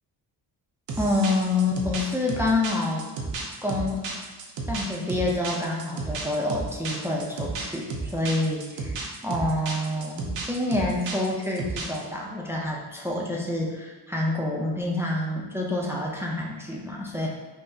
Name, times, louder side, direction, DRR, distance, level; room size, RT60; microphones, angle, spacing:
sound 1, 0.9-12.0, right 3 dB, 85° right, 0.7 m, -33 dB
voice 1, 1.0-3.0 3.6-4.1 4.7-17.3, left 2 dB, 5° right, -2 dB, 0.4 m, -27 dB
5.6 x 2.0 x 2.6 m, 1.3 s
wide cardioid pair, 135°, 43 cm